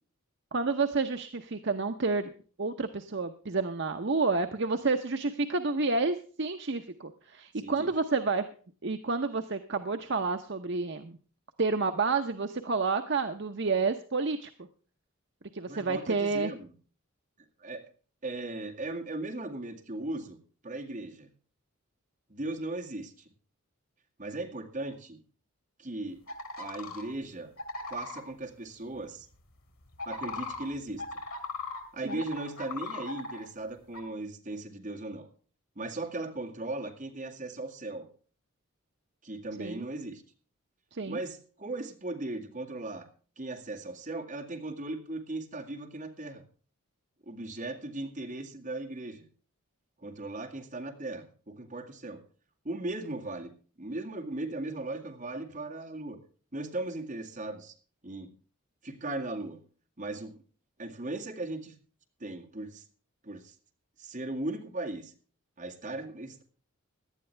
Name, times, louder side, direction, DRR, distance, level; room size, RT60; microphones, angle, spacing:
voice 1, 0.5-2.3 2.6-8.5 8.8-11.2 11.6-14.5 15.5-16.5 32.0-32.2 39.6-39.9 40.9-41.2, right 4 dB, 55° right, 6 dB, 0.8 m, -29 dB
voice 2, 7.6-7.9 15.6-16.8 17.6-17.9 18.2-20.4 20.6-21.3 22.3-23.3 24.2-25.2 25.8-26.2 26.6-27.5 27.9-29.3 30.1-31.0 31.9-35.3 35.8-38.1 39.2-40.2 41.0-43.1 43.4-46.4 47.3-49.3 50.0-52.2 52.6-53.5 53.8-56.2 56.5-57.7 58.0-58.3 58.8-59.6 60.0-60.4 60.8-61.7 62.2-62.8 63.2-63.6 64.0-65.1 65.6-66.4, right 2 dB, 35° right, 1 dB, 2.1 m, -37 dB
sound 1, 26.3-27.0 27.6-28.2 29.9-31.8 32.1-33.4 33.9-34.0, left 3 dB, 90° left, 3.6 m, -38 dB
17.5 x 11.5 x 3.3 m, 0.40 s
head